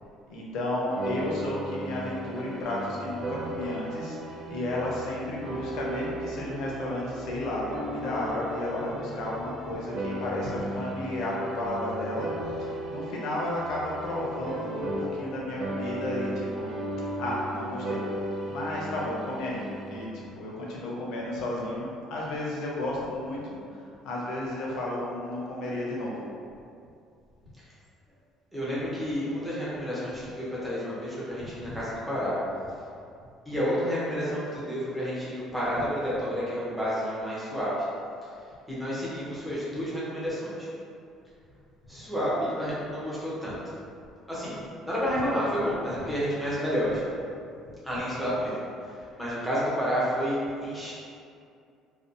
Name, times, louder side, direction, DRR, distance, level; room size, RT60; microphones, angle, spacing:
voice 1, 0.3-12.3 12.6-16.7 17.2-18.0 18.5-19.6 19.9-23.4 23.7-26.2 31.4-31.8 46.1-46.2 46.9-47.0 47.9-48.0, left 1 dB, 60° left, -4 dB, 0.5 m, -33 dB
sound 1, 0.9-15.3 15.6-20.0, right 1 dB, 50° right, 0.4 m, -36 dB
voice 2, 28.5-32.4 33.5-37.9 38.7-40.7 41.9-43.7 44.3-44.6 44.8-47.0 47.8-50.9, equal, ahead, -9 dB, 0.6 m, -30 dB
2.5 x 2.2 x 2.5 m, 2.4 s
cardioid pair, 180°, 0 cm